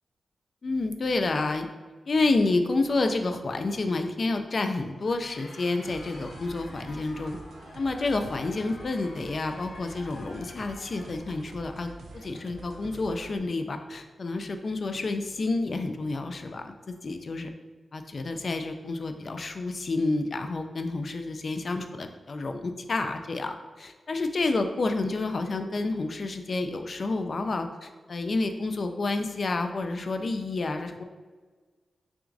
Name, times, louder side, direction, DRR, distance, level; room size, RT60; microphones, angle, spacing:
voice 1, 0.6-1.7 2.1-7.4 7.7-16.7 17.0-17.5 17.9-31.0, left 3 dB, 45° left, 6 dB, 0.3 m, -29 dB
Crowd, 4.9-11.3, left 2 dB, 85° left, 0.8 m, -49 dB
sound 1, 5.8-13.4, right 2 dB, 80° right, 0.4 m, -47 dB
5.8 x 2.4 x 2.5 m, 1.4 s
wide cardioid pair, 155°, 0 cm